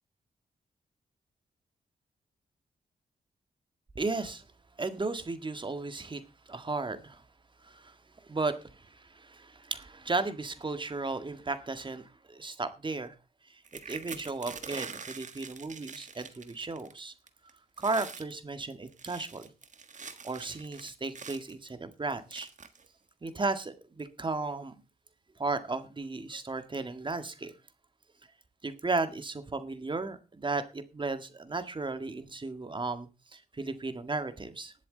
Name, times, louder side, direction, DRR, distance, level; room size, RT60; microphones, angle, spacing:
voice 1, 4.0-4.4 4.8-6.2 6.5-7.2 7.6-7.9 8.2-13.1 13.9-17.1 17.8-19.5 20.2-22.5 23.2-24.7 25.4-27.5 28.6-34.7, right 3 dB, 30° right, 1.8 m, -35 dB
sound 1, 13.6-17.0 17.3-17.5 17.8-18.3 18.9-21.5 22.3-22.9 23.6-23.7 24.0-24.3, right 5 dB, 50° right, 1.5 m, -45 dB
19.5 x 7.6 x 4.0 m
cardioid pair, 80°, 16 cm